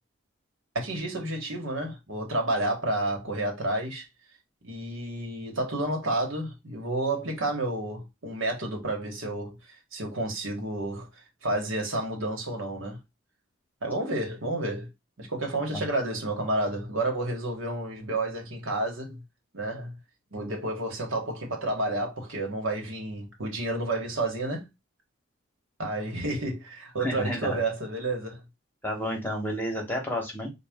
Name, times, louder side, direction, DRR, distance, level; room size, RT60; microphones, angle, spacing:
voice 1, 0.7-4.0 4.6-9.5 9.9-11.1 11.4-13.0 13.8-14.9 15.2-19.2 19.5-19.9 20.3-24.7 25.8-28.4, right 2 dB, 70° right, 1.4 m, -30 dB
voice 2, 27.0-27.6 28.8-30.5, equal, 10° left, 1.1 m, -31 dB
4.0 x 2.4 x 3.5 m
head